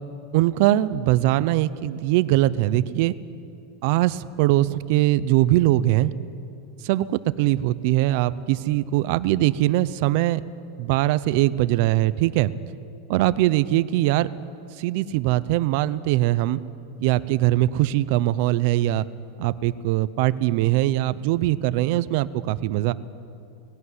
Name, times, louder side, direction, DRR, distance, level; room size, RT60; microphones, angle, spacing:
voice 1, 0.3-3.1 3.8-6.1 6.8-10.4 10.8-12.5 13.1-14.3 14.8-16.6 17.0-19.1 19.4-22.9, right 15 dB, 55° right, 16 dB, 0.6 m, -21 dB
19.0 x 17.0 x 9.7 m, 2.5 s
supercardioid pair, 150°, 0 cm